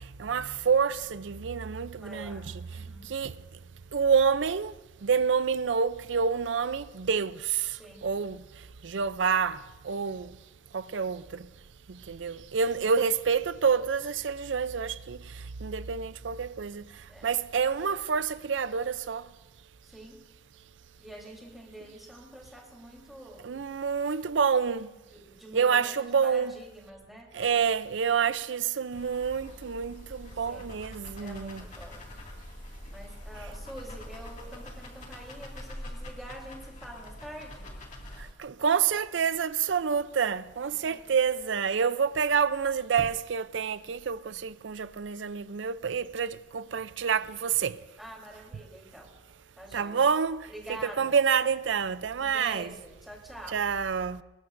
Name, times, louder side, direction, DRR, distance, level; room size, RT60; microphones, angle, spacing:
voice 1, 0.2-2.4 3.1-3.3 3.9-4.7 5.0-7.4 8.0-8.4 8.8-9.6 9.9-10.3 10.7-11.2 12.1-15.2 15.6-16.8 17.2-19.2 23.4-24.9 25.5-26.5 27.4-31.6 38.4-47.7 49.7-50.4 51.0-52.7 53.5-54.2, right 6 dB, 85° right, 0.5 m, -27 dB
voice 2, 2.0-3.1 7.8-8.1 17.1-17.3 19.8-20.2 21.0-23.6 24.9-27.7 30.4-30.7 31.2-32.1 32.6-37.7 40.7-41.0 48.0-49.1 49.6-50.0 50.5-51.2 52.2-53.6, right 1 dB, ahead, 3.6 m, -46 dB
sound 1, 28.9-38.3, left 1 dB, 40° left, 2.3 m, -44 dB
23.5 x 20.5 x 2.6 m
head